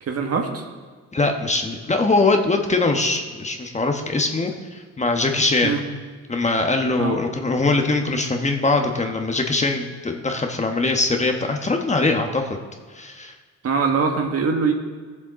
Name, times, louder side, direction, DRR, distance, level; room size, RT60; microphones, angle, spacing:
voice 1, 0.0-0.6 5.6-5.8 7.0-7.2 13.6-14.7, right 5 dB, 55° right, 3 dB, 1.5 m, -22 dB
voice 2, 1.1-5.7 6.3-12.6 12.9-13.3, left 3 dB, 25° left, 4 dB, 1.1 m, -22 dB
15.5 x 7.3 x 4.1 m, 1.5 s
cardioid pair, 90°, 30 cm